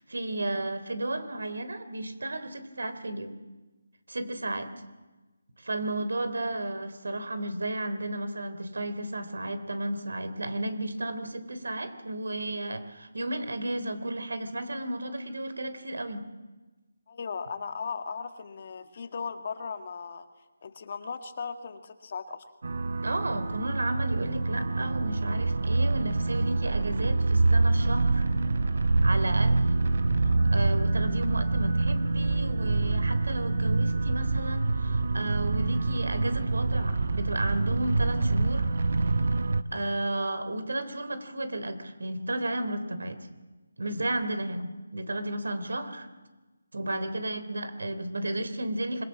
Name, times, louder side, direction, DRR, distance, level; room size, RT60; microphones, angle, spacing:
voice 1, 0.1-3.3 4.1-4.7 5.6-16.2 23.0-28.3 29.0-29.7 30.2-38.7 39.2-39.3 39.7-43.2 43.8-46.1 46.7-49.0, right 1 dB, 80° right, 11 dB, 3.4 m, -33 dB
voice 2, 17.1-20.3 20.6-22.5, left 5 dB, 40° left, 8 dB, 1.9 m, -37 dB
sound 1, 22.6-39.6, right 3 dB, 60° right, 1.1 m, -26 dB
26.0 x 22.0 x 7.5 m, 1.2 s
figure-of-eight pair, 165°, 0 cm